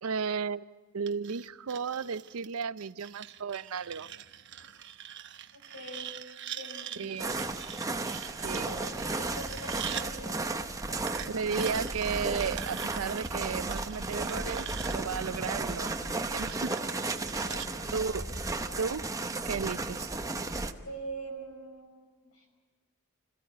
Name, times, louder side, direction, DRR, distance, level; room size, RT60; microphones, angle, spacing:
voice 1, 0.0-0.7 0.9-4.1 7.0-7.5 8.4-8.8 11.3-16.7 17.9-18.3 18.8-19.0 19.4-20.2, right 6 dB, 85° right, 16 dB, 0.6 m, -34 dB
sound 1, 1.1-10.1 11.1-17.7, right 10 dB, 60° right, 0.9 m, -44 dB
voice 2, 5.5-6.2 6.5-7.4 8.5-10.4 10.9-11.1 17.4-18.2 20.8-22.0 22.2-22.5, right 1 dB, 90° left, 4 dB, 5.7 m, -44 dB
sound 2, 7.2-20.7, right 2 dB, 15° right, 0.8 m, -34 dB
26.0 x 15.0 x 9.3 m, 1.5 s
head